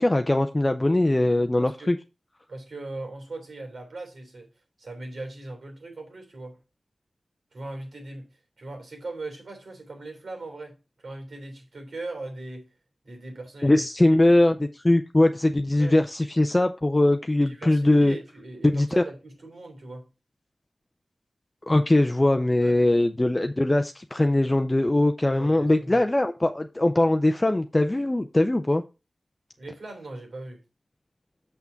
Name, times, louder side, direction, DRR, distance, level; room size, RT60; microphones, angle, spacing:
voice 1, 0.0-2.0 13.6-18.1 18.7-19.0 21.7-28.8, left 1 dB, 20° left, 0.6 m, -21 dB
voice 2, 1.6-2.0 2.5-4.5 4.8-6.6 7.5-12.7 13.0-13.8 14.1-14.2 15.8-16.0 17.4-20.1 22.6-22.8 25.3-26.1 29.6-30.6, right 2 dB, 80° right, 3.4 m, -39 dB
7.0 x 6.0 x 4.5 m
wide cardioid pair, 95°, 0 cm